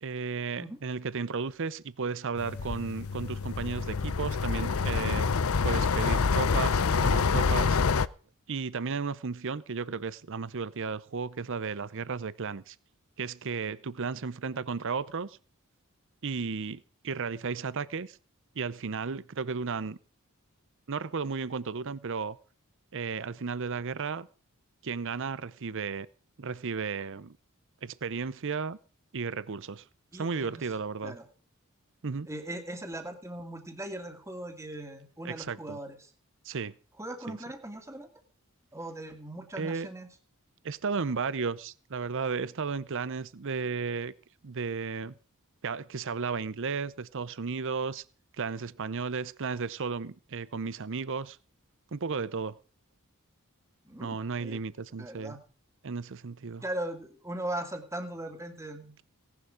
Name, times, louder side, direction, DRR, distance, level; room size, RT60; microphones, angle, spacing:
voice 1, 0.0-5.3 5.6-7.8 8.5-12.8 13.2-15.4 16.2-18.2 18.6-20.0 20.9-22.4 22.9-24.3 24.8-26.1 26.4-27.3 27.8-28.8 29.1-29.8 30.1-31.2 32.0-32.3 35.2-35.8 36.4-36.7 37.3-37.4 39.6-39.9 40.6-44.1 44.4-45.1 45.6-48.0 48.4-51.4 51.9-52.6 54.0-55.4 55.8-56.6, right 5 dB, 60° right, 0.7 m, -34 dB
sound 1, 2.4-8.1, left 5 dB, 70° left, 0.6 m, -27 dB
voice 2, 30.1-30.7 31.0-31.3 32.3-36.1 37.0-38.1 38.7-40.1 53.8-54.6 55.0-55.4 56.6-58.9, right 1 dB, 15° right, 2.2 m, -39 dB
17.5 x 11.0 x 5.1 m
head